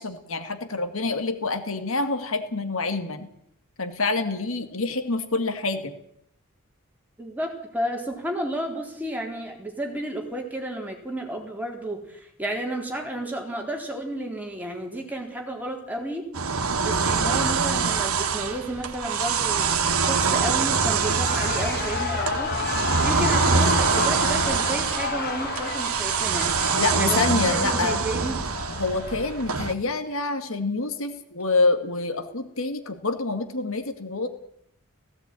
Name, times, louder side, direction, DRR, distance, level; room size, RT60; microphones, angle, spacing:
voice 1, 0.0-3.3 3.8-5.9 26.8-28.0 28.8-34.3, left 3 dB, 70° left, 7 dB, 2.1 m, -27 dB
voice 2, 7.2-16.3 16.8-22.5 22.9-26.5 27.0-28.4, right 1 dB, 10° right, 0 dB, 3.9 m, -32 dB
sound 1, 16.3-29.7, right 5 dB, 85° right, 1.6 m, -24 dB
Shout / Cheering, 20.6-29.5, left 5 dB, 45° left, 1.5 m, -32 dB
17.0 x 16.5 x 9.2 m, 0.72 s
head